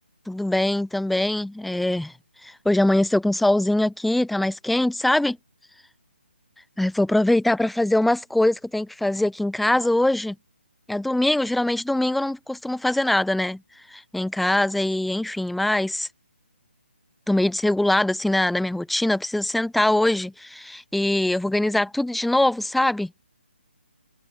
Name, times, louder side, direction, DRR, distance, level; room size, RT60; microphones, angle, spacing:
voice 1, 0.3-2.1 2.4-5.4 6.8-10.4 10.9-13.6 13.9-16.1 17.3-23.1, left 1 dB, ahead, 0.7 m, -22 dB
open air
hypercardioid pair, 155°, 6 cm